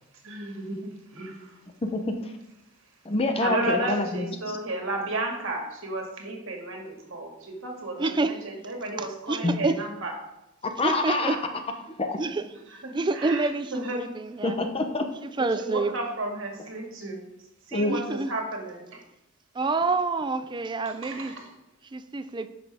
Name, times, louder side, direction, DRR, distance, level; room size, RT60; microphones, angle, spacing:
voice 1, 0.2-1.6 3.4-10.2 12.7-14.1 15.6-17.2 17.7-19.0 20.9-21.5, right 2 dB, 60° right, 1 dB, 1.9 m, -33 dB
voice 2, 1.8-2.3 3.0-4.6 9.4-9.5 10.6-11.4 12.0-12.2 14.4-15.1 17.7-17.9, left 2 dB, 25° left, 5 dB, 0.6 m, -27 dB
voice 3, 8.0-8.4 9.0-9.8 10.8-11.4 12.2-12.4 12.9-14.6 15.2-15.9 17.9-18.3 19.6-21.3 21.9-22.5, right 3 dB, 20° right, 11 dB, 0.4 m, -28 dB
11.0 x 6.1 x 3.5 m, 0.92 s
head